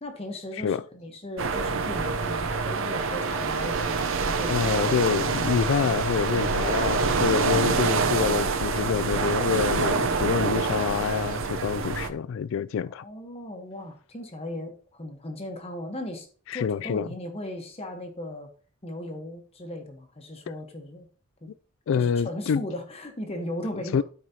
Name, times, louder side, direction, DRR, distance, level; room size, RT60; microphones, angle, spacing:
voice 1, 0.0-4.7 13.0-18.5 18.8-21.1 21.4-21.5 22.0-24.0, left 1 dB, 30° left, 1.0 m, -37 dB
sound 1, 1.4-12.1, right 4 dB, 60° right, 0.6 m, -26 dB
voice 2, 4.5-13.0 16.5-17.1 21.9-22.6 23.9-24.0, left 7 dB, 60° left, 0.3 m, -26 dB
12.5 x 4.7 x 2.8 m
head